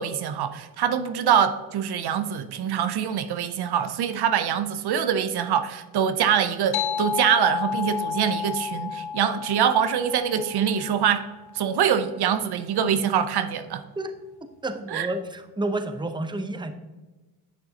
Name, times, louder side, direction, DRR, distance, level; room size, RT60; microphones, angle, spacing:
voice 1, 0.0-11.3 11.5-13.8 14.9-15.1, right 8 dB, 70° right, 10 dB, 0.7 m, -24 dB
sound 1, 6.7-11.7, left 7 dB, 70° left, 0.7 m, -31 dB
voice 2, 14.4-16.7, right 2 dB, 10° right, 7 dB, 0.7 m, -30 dB
10.5 x 6.7 x 2.8 m, 1.2 s
cardioid pair, 85°, 40 cm